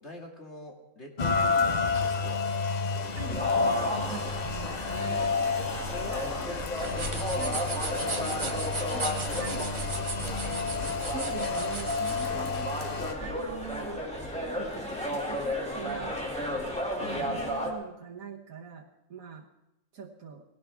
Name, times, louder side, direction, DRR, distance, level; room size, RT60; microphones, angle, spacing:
voice 1, 0.0-2.5 2.9-3.8 5.8-6.5 6.8-8.2 8.8-9.4 9.9-10.4 12.1-12.5 17.0-17.4, left 2 dB, 55° left, 0 dB, 2.7 m, -44 dB
Rain, 1.2-13.1, left 4 dB, 35° left, 0.8 m, -30 dB
sound 1, 3.3-17.7, equal, 5° left, 2.4 m, -34 dB
voice 2, 4.1-5.5 7.4-7.6 8.9-9.1 9.4-9.7 11.0-14.1 14.4-14.8 15.1-16.7 17.2-19.5 19.9-20.4, right 6 dB, 85° right, -1 dB, 1.7 m, -43 dB
sound 2, 6.7-12.3, right 3 dB, 25° right, 0.9 m, -37 dB
19.0 x 17.0 x 3.6 m, 0.91 s
omnidirectional pair, 1.4 m